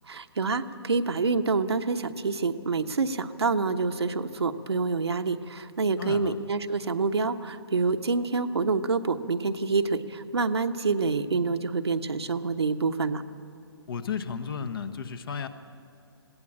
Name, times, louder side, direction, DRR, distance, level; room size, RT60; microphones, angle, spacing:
voice 1, 0.1-13.2, right 4 dB, 75° right, 7 dB, 1.2 m, -27 dB
voice 2, 6.0-6.3 13.9-15.5, left 6 dB, 55° left, 9 dB, 1.5 m, -33 dB
21.0 x 17.0 x 8.6 m, 2.7 s
figure-of-eight pair, 135°, 14 cm